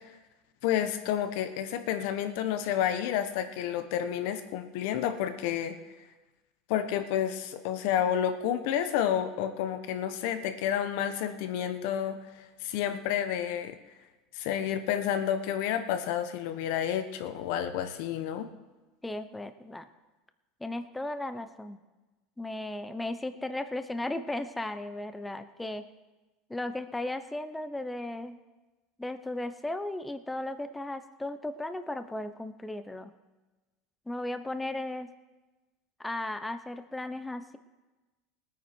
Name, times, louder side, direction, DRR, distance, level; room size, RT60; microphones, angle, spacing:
voice 1, 0.6-5.8 6.7-13.7 14.3-18.5, left 10 dB, 70° left, 9 dB, 1.2 m, -30 dB
voice 2, 19.0-19.9 20.6-21.8 22.4-25.9 26.5-28.4 29.0-33.1 34.1-35.1 36.0-37.6, left 1 dB, 10° left, 10 dB, 0.9 m, -36 dB
20.0 x 9.3 x 4.6 m, 1.2 s
hypercardioid pair, 100°, 0 cm